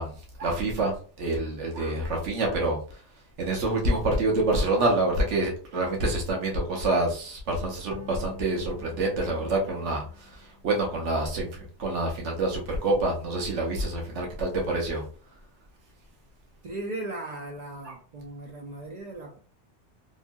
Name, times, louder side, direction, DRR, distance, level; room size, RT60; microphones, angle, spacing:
voice 1, 0.0-15.0 17.8-18.0, right 2 dB, 85° right, 1.1 m, -27 dB
sound 1, 7.9-11.4, left 5 dB, 25° left, 0.8 m, -47 dB
voice 2, 16.6-19.4, right 2 dB, 60° right, 0.4 m, -37 dB
2.9 x 2.6 x 2.2 m
omnidirectional pair, 1.2 m